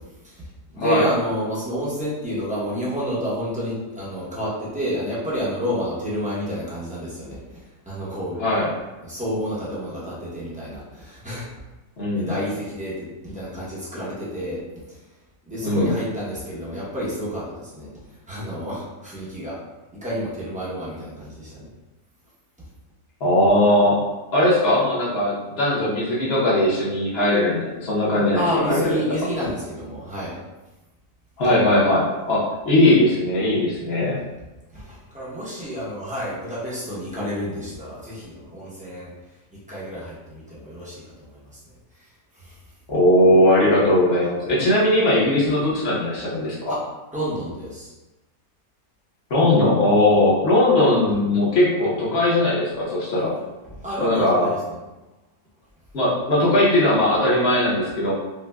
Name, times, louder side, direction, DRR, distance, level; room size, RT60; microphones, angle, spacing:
voice 1, 0.7-8.4 9.0-11.5 12.1-14.6 14.9-15.0 15.5-17.9 18.3-19.6 19.9-21.7 28.3-30.3 34.7-39.1 39.5-41.6 42.4-42.6 46.7-46.8 47.1-47.9 53.7-54.8, equal, 10° right, -9 dB, 0.4 m, -29 dB
voice 2, 8.4-8.7 12.0-12.3 15.6-15.9 23.2-24.0 24.3-28.4 28.7-29.0 31.4-34.1 42.9-46.8 49.3-53.3 54.0-54.5 55.9-58.1, left 1 dB, 50° left, -6 dB, 0.8 m, -19 dB
4.7 x 2.1 x 2.3 m, 1.1 s
omnidirectional pair, 1.8 m